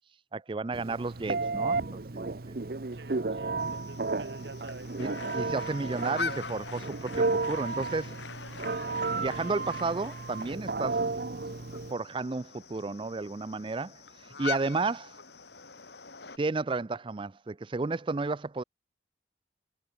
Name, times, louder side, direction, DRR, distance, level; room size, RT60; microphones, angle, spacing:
voice 1, 0.3-2.6 5.0-8.2 9.1-11.0 11.9-14.0 14.4-15.2 16.4-18.6, right 3 dB, 30° right, 0.4 m, -32 dB
Telephone, 0.7-11.9, right 3 dB, 55° right, 0.8 m, -33 dB
voice 2, 2.9-5.5, right 2 dB, 75° right, 1.9 m, -48 dB
sound 1, 3.6-16.4, left 5 dB, 65° left, 4.6 m, -44 dB
sound 2, 5.0-10.6, left 5 dB, 90° left, 1.5 m, -45 dB
head